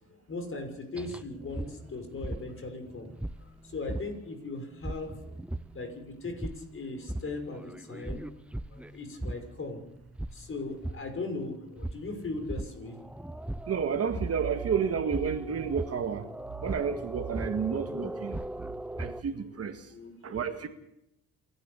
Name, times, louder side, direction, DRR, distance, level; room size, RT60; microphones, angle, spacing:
voice 1, 0.1-3.1 3.6-5.3 5.7-8.3 8.7-9.8 10.3-13.0 19.5-20.7, left 3 dB, 40° left, 6 dB, 6.1 m, -39 dB
sound 1, 1.0-19.2, right 1 dB, 5° right, 0.7 m, -39 dB
voice 2, 13.7-16.3 16.6-18.4 19.0-19.9 20.2-20.7, right 7 dB, 45° right, 8 dB, 1.9 m, -31 dB
27.5 x 12.0 x 8.3 m, 0.83 s
cardioid pair, 100°, 33 cm